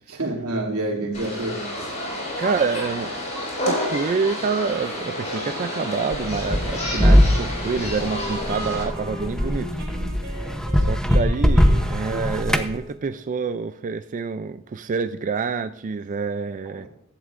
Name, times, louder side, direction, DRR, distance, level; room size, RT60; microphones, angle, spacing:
voice 1, 0.1-1.7 12.1-12.2 16.6-16.9, right 2 dB, 90° right, 2.8 m, -28 dB
sound 1, 1.1-8.8, left 1 dB, 35° left, 4.9 m, -30 dB
voice 2, 2.4-3.2 3.7-9.7 10.8-16.9, right 5 dB, 35° right, 0.4 m, -27 dB
Wind instrument woodwind instrument, 5.3-13.3, right 1 dB, 60° right, 4.3 m, -38 dB
sound 2, 6.1-12.7, equal, 5° left, 0.8 m, -21 dB
15.5 x 11.5 x 2.5 m
head